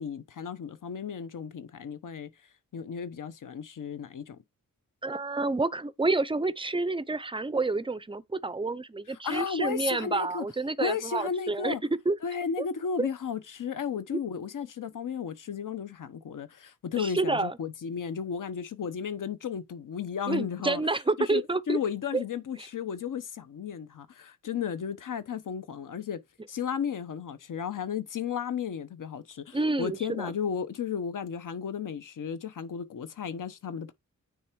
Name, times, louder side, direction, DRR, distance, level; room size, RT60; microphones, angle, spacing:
voice 1, 0.0-2.3 2.7-4.4 9.1-10.5 10.8-11.8 12.2-20.8 21.2-26.2 26.5-33.9, left 7 dB, 70° left, 0.9 m, -34 dB
voice 2, 5.0-11.7 12.1-12.2 12.6-12.7 13.0-13.1 17.0-17.5 20.3-21.8 22.1-22.2 29.5-30.3, right 3 dB, 15° right, 0.4 m, -29 dB
9.4 x 3.4 x 4.5 m
wide cardioid pair, 140°, 33 cm